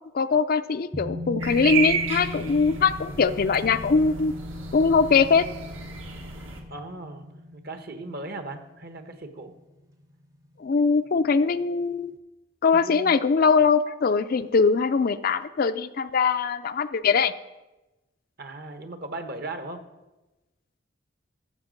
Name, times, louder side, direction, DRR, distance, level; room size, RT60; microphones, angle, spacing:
voice 1, 0.1-4.3 4.7-5.5 10.6-12.1 12.6-17.3, left 5 dB, 45° left, 11 dB, 0.4 m, -22 dB
sound 1, 0.9-10.0 10.3-10.4, left 1 dB, 15° right, 0.7 m, -38 dB
sound 2, 1.4-6.6, right 6 dB, 70° right, 1.7 m, -33 dB
voice 2, 6.7-9.5 12.7-13.1 18.4-19.8, right 2 dB, 50° right, 7 dB, 1.1 m, -38 dB
13.5 x 7.7 x 5.2 m, 1.1 s
head